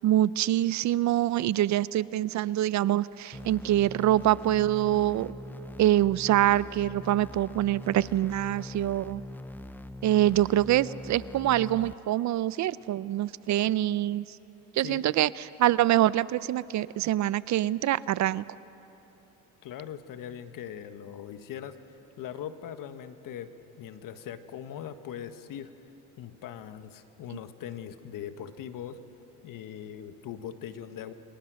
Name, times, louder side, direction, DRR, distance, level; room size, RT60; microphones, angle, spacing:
voice 1, 0.0-5.3 5.8-9.2 10.0-14.2 14.7-18.4, right 13 dB, 50° right, 19 dB, 0.6 m, -25 dB
sound 1, 3.3-11.9, left 1 dB, 5° left, 0.5 m, -42 dB
voice 2, 19.6-21.8 22.2-23.5 23.8-25.7 26.2-29.0 29.4-31.1, left 9 dB, 60° left, 10 dB, 1.5 m, -40 dB
29.5 x 23.0 x 6.3 m, 3.0 s
supercardioid pair, 95°, 37 cm